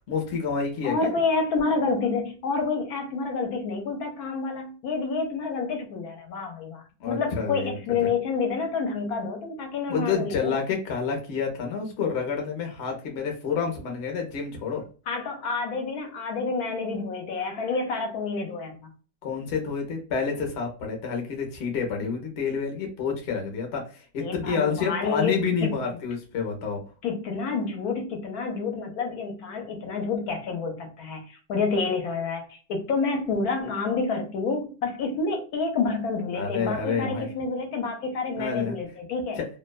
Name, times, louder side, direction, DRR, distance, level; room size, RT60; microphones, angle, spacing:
voice 1, 0.1-1.1 7.0-8.1 9.9-14.8 19.2-26.8 36.3-37.3 38.3-38.8 39.4-39.5, left 5 dB, 55° left, 2 dB, 0.8 m, -29 dB
voice 2, 0.8-10.6 15.1-18.9 24.2-25.7 27.0-39.4, left 4 dB, 70° left, 3 dB, 1.0 m, -28 dB
2.6 x 2.2 x 2.2 m, 0.38 s
omnidirectional pair, 1.7 m